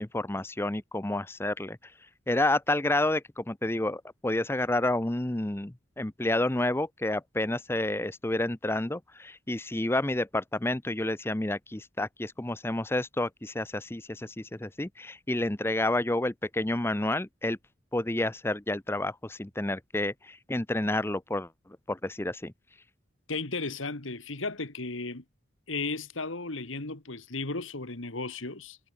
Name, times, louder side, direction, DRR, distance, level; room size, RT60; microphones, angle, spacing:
voice 1, 0.0-1.8 2.3-17.6 17.9-21.5 21.9-22.5, left 1 dB, 10° left, 0.6 m, -29 dB
voice 2, 23.3-25.2 25.7-28.8, left 3 dB, 75° left, 2.2 m, -35 dB
head